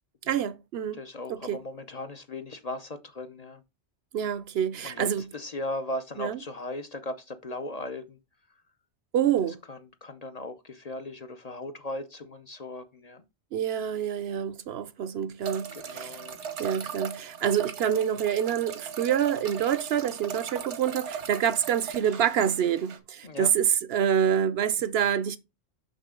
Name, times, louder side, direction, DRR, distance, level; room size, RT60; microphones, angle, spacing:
voice 1, 0.3-1.0 1.3-1.6 4.1-5.2 6.2-6.4 9.1-9.6 13.5-16.2 16.6-25.4, right 9 dB, 70° right, 0.8 m, -27 dB
voice 2, 0.9-3.6 4.8-8.2 8.5-8.6 9.7-13.2 15.7-16.4 23.2-23.5, left 2 dB, 40° left, 0.7 m, -37 dB
sound 1, 15.4-23.0, right 7 dB, 85° right, 1.3 m, -38 dB
6.4 x 6.0 x 3.7 m
omnidirectional pair, 1.1 m